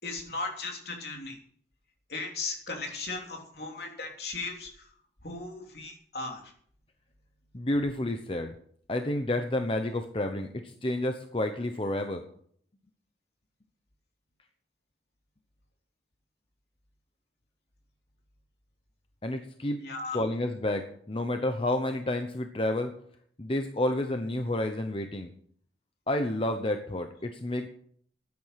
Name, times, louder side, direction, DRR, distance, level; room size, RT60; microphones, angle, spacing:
voice 1, 0.0-1.4 2.1-4.7 5.2-6.4 19.8-20.2, left 3 dB, 65° left, 1 dB, 3.3 m, -36 dB
voice 2, 7.5-8.5 8.9-12.2 19.2-19.8 20.1-22.9 23.4-25.3 26.1-27.7, left 1 dB, 30° left, 6 dB, 0.9 m, -30 dB
13.5 x 9.6 x 5.8 m, 0.62 s
head